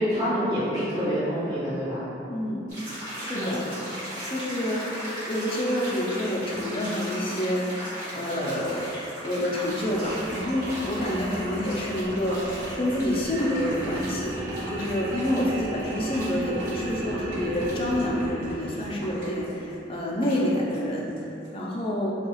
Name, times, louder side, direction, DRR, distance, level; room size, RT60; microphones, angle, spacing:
voice 1, 0.0-2.0 3.3-3.5, equal, 20° right, -17 dB, 0.9 m, -26 dB
voice 2, 2.3-2.7 3.2-3.7 3.9-8.9 9.2-14.4 14.7-22.2, left 1 dB, 30° left, -4 dB, 0.5 m, -28 dB
sound 1, 2.7-21.2 21.4-21.5, equal, 45° right, 1.4 m, -38 dB
sound 2, 9.6-19.9, right 1 dB, 60° right, 0.4 m, -35 dB
4.5 x 2.3 x 3.0 m, 2.8 s
head